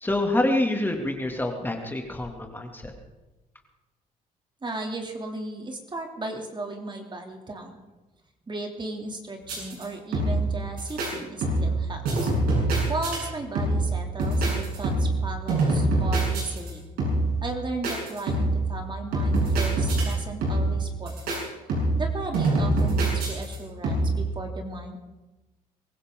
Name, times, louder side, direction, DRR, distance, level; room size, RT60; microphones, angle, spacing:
voice 1, 0.0-2.8, left 1 dB, 15° left, 2 dB, 2.5 m, -26 dB
voice 2, 4.6-7.8 8.5-12.3 12.9-16.8 17.4-21.2 22.0-25.0, right 2 dB, 30° right, 2 dB, 2.9 m, -35 dB
sound 1, 9.4-9.8 10.1-10.5 10.8-11.1 11.4-11.8 12.0-13.2 13.5-13.9 14.2-15.2 15.5-16.7 17.0-17.4 17.8-18.6 19.1-20.1 20.4-20.8 21.1-21.4 21.7-22.1 22.3-23.6 23.8-24.2, right 2 dB, 80° right, 7.5 m, -24 dB
23.5 x 15.5 x 3.8 m, 1.1 s
supercardioid pair, 75°, 16 cm